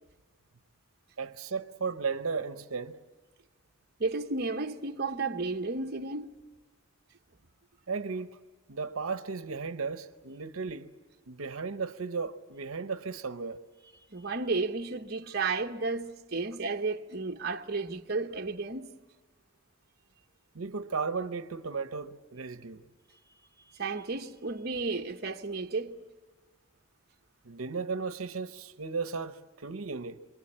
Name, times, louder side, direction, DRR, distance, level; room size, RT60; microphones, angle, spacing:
voice 1, 1.2-3.0 7.9-8.4 8.7-10.9 11.3-13.6 20.5-22.9 27.4-30.2, right 4 dB, 80° right, 0.8 m, -35 dB
voice 2, 4.0-6.3 14.1-18.9 23.6-26.0, right 3 dB, 50° right, 1.0 m, -33 dB
26.5 x 24.0 x 8.7 m
head